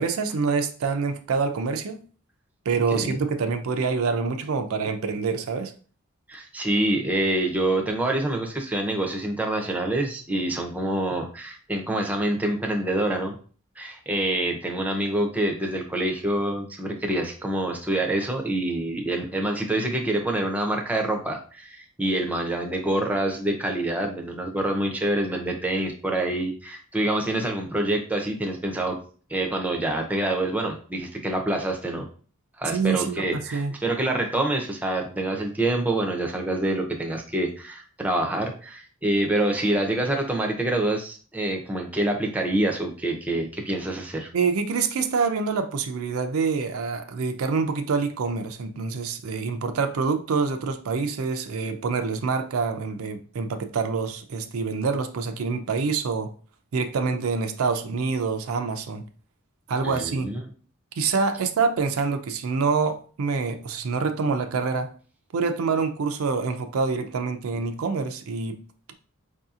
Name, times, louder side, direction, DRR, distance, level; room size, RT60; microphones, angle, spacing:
voice 1, 0.0-2.0 2.7-5.7 32.7-33.7 44.3-56.3 56.7-59.0 59.7-60.3 61.0-64.9 65.3-68.6, right 4 dB, 70° right, 7 dB, 0.4 m, -26 dB
voice 2, 2.9-3.2 6.3-13.4 13.8-29.0 29.3-32.1 32.6-44.3 59.8-60.4, right 1 dB, 5° right, 2 dB, 0.6 m, -26 dB
4.7 x 2.7 x 2.4 m, 0.40 s
head